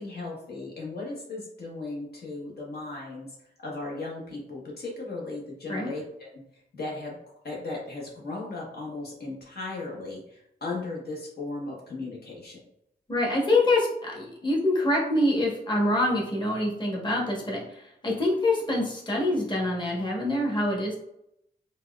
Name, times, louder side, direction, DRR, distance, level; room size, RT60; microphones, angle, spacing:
voice 1, 0.0-3.3 3.6-6.4 6.7-7.2 7.4-12.6, left 2 dB, 70° left, -3 dB, 1.0 m, -36 dB
voice 2, 13.1-20.9, left 1 dB, 25° left, -3 dB, 1.0 m, -25 dB
4.1 x 2.2 x 2.2 m, 0.77 s
cardioid pair, 60°, 17 cm